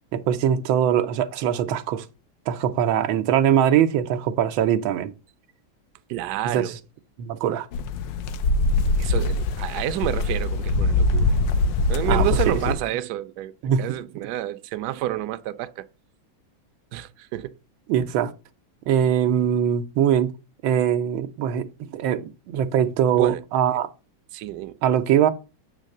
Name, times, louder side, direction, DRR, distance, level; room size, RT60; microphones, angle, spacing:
voice 1, 0.1-2.0 2.5-5.1 6.5-6.7 7.2-7.7 12.1-12.5 13.6-14.0 17.9-18.3 18.9-20.3 20.6-23.9 24.8-25.3, right 9 dB, 85° right, 1.5 m, -22 dB
voice 2, 6.1-6.8 9.0-11.4 11.9-13.5 13.8-15.9 16.9-17.6 23.1-23.4 24.3-24.8, right 14 dB, 70° right, 1.0 m, -29 dB
sound 1, 7.7-12.7, left 2 dB, 75° left, 1.3 m, -22 dB
8.3 x 3.3 x 6.5 m
omnidirectional pair, 2.1 m